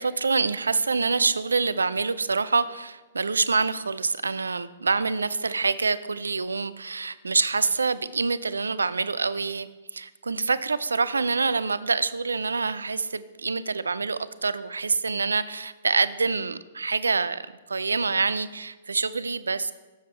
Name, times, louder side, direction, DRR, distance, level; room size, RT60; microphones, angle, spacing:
voice 1, 0.0-17.4 17.7-19.7, right 4 dB, 85° right, 16 dB, 0.4 m, -26 dB
7.4 x 7.0 x 4.4 m, 1.2 s
hypercardioid pair, 115°, 0 cm